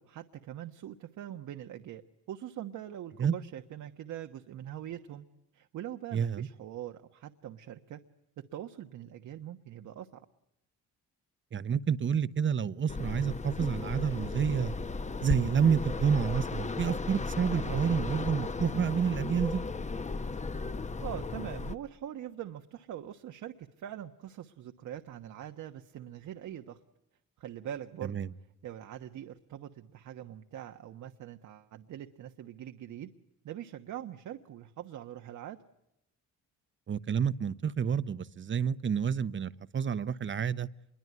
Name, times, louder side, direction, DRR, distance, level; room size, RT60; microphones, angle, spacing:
voice 1, 0.0-2.0 2.3-5.2 5.5-8.0 8.4-10.2 17.6-17.8 21.0-26.8 27.4-28.2 28.6-33.1 33.4-35.6, right 11 dB, 75° right, 1.3 m, -43 dB
voice 2, 6.1-6.5 11.5-14.8 15.2-19.6 28.0-28.3 36.9-40.7, right 7 dB, 40° right, 1.0 m, -29 dB
sound 1, 12.9-21.7, left 3 dB, 25° left, 1.0 m, -35 dB
27.0 x 22.5 x 9.6 m
cardioid pair, 90°, 30 cm